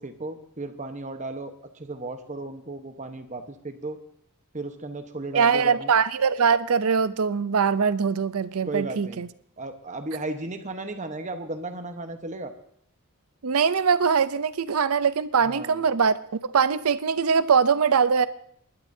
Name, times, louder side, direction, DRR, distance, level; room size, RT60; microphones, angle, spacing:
voice 1, 0.0-4.0 4.5-5.9 8.7-9.2 9.6-12.5 15.4-15.8, right 2 dB, 35° right, 7 dB, 1.1 m, -35 dB
voice 2, 5.3-9.3 13.4-16.2 16.4-18.3, right 6 dB, 80° right, 15 dB, 0.6 m, -22 dB
28.0 x 12.0 x 2.8 m, 0.67 s
head